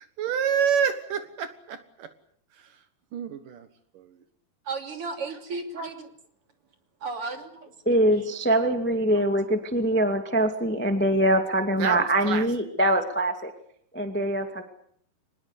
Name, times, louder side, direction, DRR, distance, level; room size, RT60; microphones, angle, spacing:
voice 1, 0.2-2.1 3.1-3.7 3.9-4.1 11.8-12.5, right 7 dB, 70° right, 10 dB, 3.0 m, -27 dB
voice 2, 4.7-6.1 7.0-7.7 8.1-8.3 9.1-9.3, right 4 dB, 40° right, 6 dB, 3.7 m, -34 dB
voice 3, 7.8-13.5 13.9-14.6, right 1 dB, 5° left, 7 dB, 1.4 m, -23 dB
24.5 x 20.5 x 8.4 m, 0.64 s
omnidirectional pair, 4.1 m